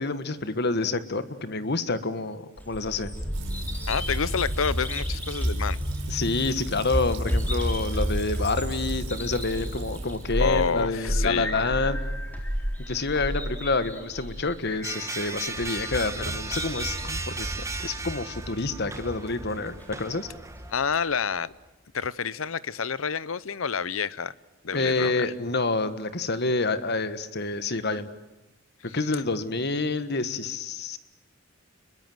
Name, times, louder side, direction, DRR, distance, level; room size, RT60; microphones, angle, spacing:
voice 1, 0.0-3.1 6.1-12.0 12.9-20.3 24.7-28.1 28.9-31.0, left 3 dB, 55° left, 12 dB, 1.6 m, -28 dB
Bird vocalization bird call bird song, 2.6-20.7, equal, 10° left, 3.9 m, -32 dB
Fill (with liquid), 3.3-11.0, right 1 dB, 70° right, 4.6 m, -37 dB
voice 2, 3.9-5.8 10.4-11.8 20.7-21.5 21.9-24.3 24.6-25.3 28.9-29.0, left 6 dB, 80° left, 19 dB, 0.8 m, -28 dB
sound 1, 14.8-20.7, right 4 dB, 15° right, 1.6 m, -36 dB
29.5 x 22.0 x 7.9 m, 1.0 s
head